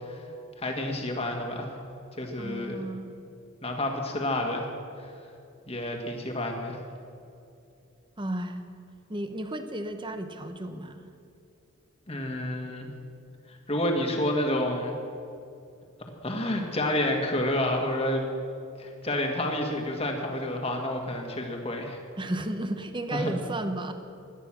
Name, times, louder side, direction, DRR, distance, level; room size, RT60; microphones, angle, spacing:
voice 1, 0.6-1.7 2.2-2.8 3.6-4.7 5.7-6.8 12.1-12.9 13.7-14.9 16.2-18.3 18.8-22.0 23.1-23.4, left 1 dB, 25° left, 2 dB, 1.8 m, -29 dB
voice 2, 2.4-3.1 8.2-8.6 9.1-11.1 22.2-23.9, right 1 dB, 20° right, 8 dB, 0.9 m, -33 dB
17.5 x 12.0 x 6.2 m, 2.6 s
head